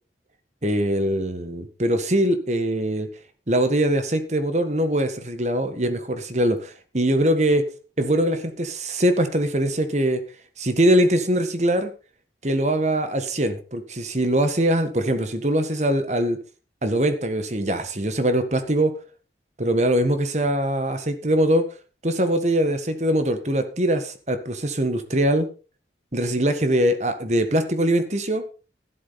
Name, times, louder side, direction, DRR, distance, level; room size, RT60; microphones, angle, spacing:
voice 1, 0.6-3.1 3.5-7.7 8.0-10.2 10.6-11.9 12.4-16.4 16.8-18.9 19.6-21.7 22.0-25.5 26.1-28.4, right 1 dB, 40° right, 8 dB, 1.7 m, -22 dB
13.0 x 11.5 x 4.3 m, 0.34 s
head